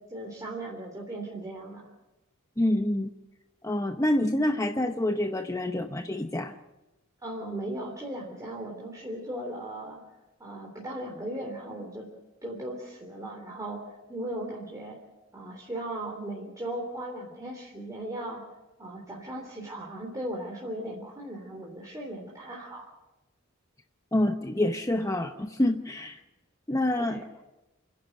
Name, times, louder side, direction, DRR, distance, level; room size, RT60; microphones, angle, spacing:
voice 1, 0.1-1.8 7.2-10.0 10.4-12.1 12.4-15.0 15.3-18.4 18.8-22.9 26.9-27.2, right 1 dB, 15° right, -2 dB, 3.4 m, -37 dB
voice 2, 2.6-3.1 3.6-6.6 24.1-26.2 26.7-27.2, left 1 dB, 15° left, 6 dB, 0.8 m, -27 dB
29.0 x 11.0 x 9.2 m, 1.0 s
head